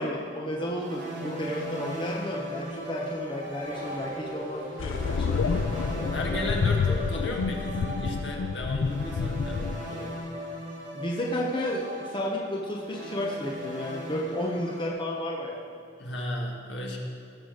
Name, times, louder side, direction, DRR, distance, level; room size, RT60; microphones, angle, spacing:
voice 1, 0.0-5.6 10.9-15.7, left 1 dB, 25° left, -2 dB, 1.0 m, -32 dB
sound 1, 0.6-14.9, equal, 40° right, 3.2 m, -38 dB
Race car auto racing / Accelerating revving vroom, 2.7-8.0, equal, 10° right, 3.3 m, -43 dB
sound 2, 4.8-9.8, left 5 dB, 80° left, 0.4 m, -28 dB
voice 2, 6.1-10.2 16.0-17.0, left 2 dB, 65° left, 0 dB, 1.9 m, -34 dB
17.5 x 6.1 x 6.5 m, 2.3 s
head